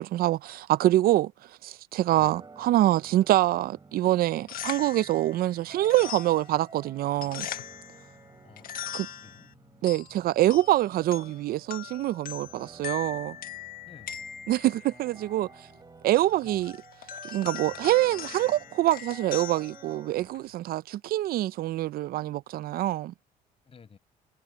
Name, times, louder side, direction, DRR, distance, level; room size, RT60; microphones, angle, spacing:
voice 1, 0.0-1.3 1.6-7.5 8.9-9.1 9.8-13.4 14.5-15.5 16.0-16.7 17.2-23.1, right 15 dB, 65° right, 0.5 m, -25 dB
voice 2, 2.0-2.4 8.4-8.7 9.1-9.5 13.8-14.3 16.4-16.8 23.6-24.0, left 6 dB, 35° left, 6.7 m, -53 dB
sound 1, 2.2-20.3, right 4 dB, 25° right, 4.6 m, -52 dB
sound 2, 4.3-20.5, left 10 dB, 60° left, 1.6 m, -42 dB
cardioid pair, 110°, 17 cm